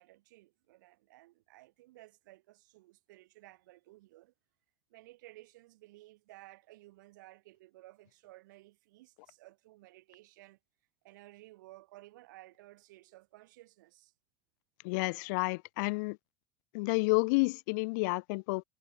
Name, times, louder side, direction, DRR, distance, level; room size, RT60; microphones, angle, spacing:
voice 1, 0.0-4.3 4.9-10.6 11.0-14.1, right 18 dB, 85° right, 4.6 m, -56 dB
voice 2, 14.8-16.2 16.7-18.6, left 28 dB, 75° left, 0.4 m, -30 dB
supercardioid pair, 105°, 10 cm